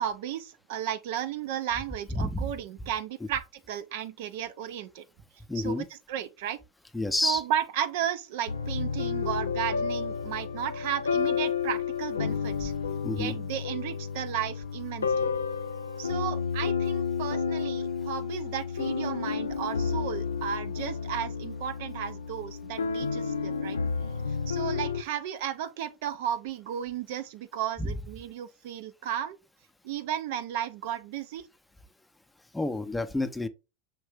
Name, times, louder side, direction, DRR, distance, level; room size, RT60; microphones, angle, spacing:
voice 1, 0.0-5.0 5.5-6.6 7.2-12.7 13.1-15.3 16.0-23.8 24.5-29.4 29.8-31.5, right 10 dB, 60° right, 0.5 m, -34 dB
voice 2, 2.1-2.5 5.5-5.9 6.9-7.4 13.0-13.4 27.8-27.9 32.5-33.5, left 1 dB, 10° left, 0.6 m, -29 dB
sound 1, 8.5-25.0, left 6 dB, 85° left, 0.4 m, -31 dB
5.8 x 2.6 x 3.4 m
hypercardioid pair, 90°, 0 cm